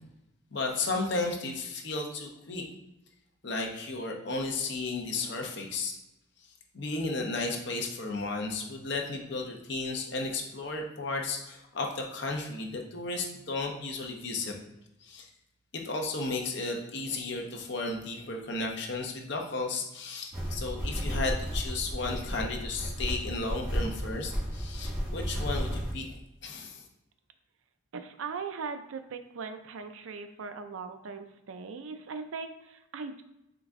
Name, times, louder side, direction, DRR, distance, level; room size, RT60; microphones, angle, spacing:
voice 1, 0.5-2.6 3.4-6.0 6.7-14.5 15.0-15.3 15.7-26.1 26.4-26.8, left 3 dB, 55° left, 1 dB, 0.7 m, -34 dB
sound 1, 20.3-25.9, equal, 15° right, 1.3 m, -33 dB
voice 2, 27.9-33.2, right 5 dB, 80° right, 8 dB, 0.4 m, -39 dB
3.8 x 3.4 x 3.6 m, 0.88 s
head